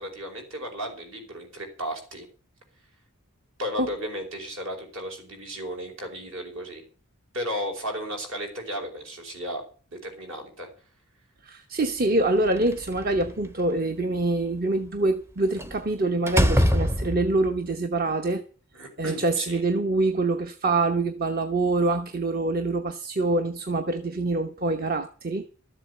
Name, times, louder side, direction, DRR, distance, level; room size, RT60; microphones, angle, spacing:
voice 1, 0.0-2.3 3.6-6.8 7.3-9.6 9.9-10.7 18.7-19.6, equal, 65° right, 5.0 m, -34 dB
voice 2, 11.4-18.4 19.0-25.4, right 2 dB, 40° right, 1.0 m, -25 dB
Slam, 12.4-13.5 15.6-15.8 16.3-17.5, equal, 10° right, 0.7 m, -23 dB
13.0 x 7.8 x 8.0 m
head